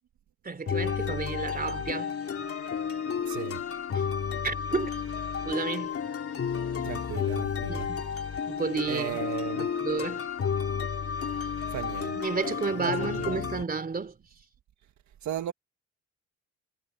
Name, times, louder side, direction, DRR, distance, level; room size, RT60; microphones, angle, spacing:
voice 1, 0.4-2.1 3.9-4.1 4.4-4.9 5.4-6.0 7.7-8.0 8.5-9.2 9.6-10.3 12.1-14.2, right 4 dB, 30° right, 3.2 m, -32 dB
sound 1, 0.7-13.6, left 7 dB, 50° left, 3.1 m, -32 dB
voice 2, 3.2-3.6 6.8-7.9 8.9-9.7 11.7-12.2 12.8-13.4 15.2-15.5, right 12 dB, 70° right, 1.6 m, -36 dB
cardioid pair, 90°, 30 cm